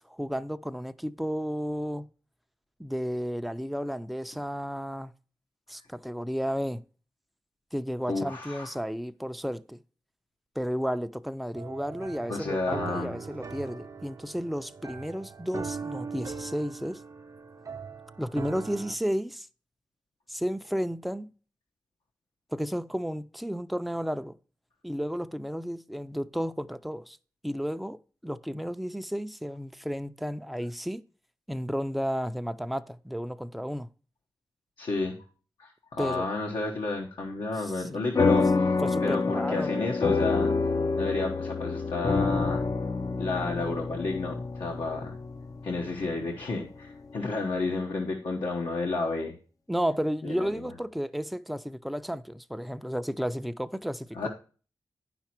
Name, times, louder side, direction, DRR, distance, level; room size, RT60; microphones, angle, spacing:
voice 1, 0.1-2.1 2.8-5.1 5.7-6.8 7.7-9.8 10.6-17.0 18.2-19.5 20.3-21.3 22.5-24.4 24.8-27.2 27.4-31.0 31.5-33.9 36.0-36.3 37.6-38.2 38.8-39.8 49.7-54.3, equal, ahead, 0.5 m, -32 dB
voice 2, 8.1-8.7 12.3-13.2 34.8-35.2 35.6-38.7 39.0-40.5 41.0-42.6 43.2-45.1 45.6-49.3 50.2-50.7 54.2-54.3, left 3 dB, 85° left, 1.2 m, -31 dB
sound 1, 11.5-19.0, right 5 dB, 45° right, 0.6 m, -40 dB
sound 2, 38.2-46.9, left 4 dB, 45° left, 0.6 m, -27 dB
9.5 x 5.9 x 4.5 m
wide cardioid pair, 80°, 8 cm